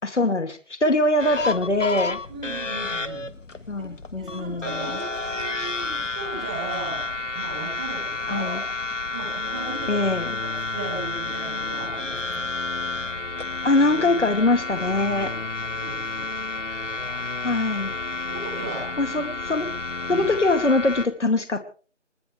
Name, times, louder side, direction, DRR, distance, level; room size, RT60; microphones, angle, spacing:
voice 1, 0.0-2.2 3.7-4.9 8.3-8.6 9.9-10.3 13.6-15.3 17.4-17.9 19.0-19.7 20.1-21.6, left 2 dB, 70° left, 7 dB, 2.6 m, -22 dB
sound 1, 1.2-21.1, left 3 dB, 90° left, 1.7 m, -31 dB
voice 2, 2.3-3.3 4.2-7.1 7.3-8.7 9.0-9.9 10.7-12.5 15.3-16.3 18.3-18.9 19.2-19.3 20.1-20.3, right 3 dB, 5° right, 2 dB, 1.6 m, -36 dB
sound 2, 9.2-20.5, left 3 dB, 50° left, 1.7 m, -39 dB
29.5 x 12.5 x 3.3 m, 0.41 s
figure-of-eight pair, 170°, 36 cm